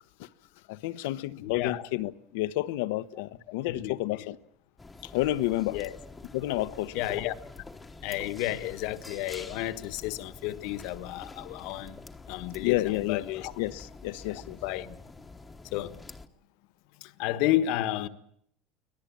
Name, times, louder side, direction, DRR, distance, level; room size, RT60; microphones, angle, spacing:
voice 1, 0.7-4.4 5.0-5.8 6.3-7.0 12.6-13.2 13.6-14.6, left 16 dB, 80° left, 1.0 m, -30 dB
voice 2, 1.3-1.8 3.6-4.3 5.7-6.0 6.9-7.3 8.0-12.0 12.3-13.5 14.3-15.0 15.6-16.0 17.0-18.1, left 14 dB, 60° left, 1.3 m, -32 dB
sound 1, 4.8-16.3, left 3 dB, 10° left, 1.1 m, -47 dB
25.0 x 18.0 x 8.6 m
cardioid pair, 160°, 0 cm